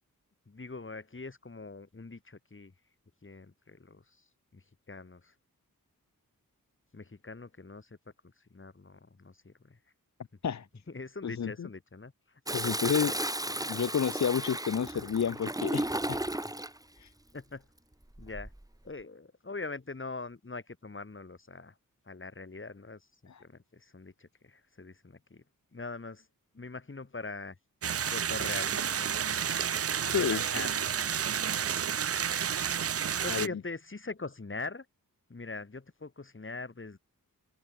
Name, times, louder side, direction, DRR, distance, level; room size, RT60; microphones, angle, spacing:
voice 1, 0.5-2.7 3.2-4.2 4.5-5.3 6.9-8.0 8.2-9.8 10.9-13.2 13.5-13.7 17.3-17.7 18.2-18.5 18.8-21.7 22.1-25.4 25.7-26.3 26.5-27.6 28.1-29.6 30.0-30.9 31.5-32.1 33.2-34.9 35.3-37.0, left 3 dB, 35° left, 4.5 m, -43 dB
voice 2, 11.2-11.7 12.5-13.1 13.7-16.2 17.0-17.1 23.3-23.4 30.1-30.4 33.3-33.5, left 7 dB, 55° left, 0.7 m, -30 dB
Toilet flush, 12.5-16.8 18.1-18.6, right 1 dB, 10° right, 2.9 m, -34 dB
sound 1, 27.8-33.5, right 8 dB, 45° right, 0.4 m, -31 dB
open air
wide cardioid pair, 115°, 34 cm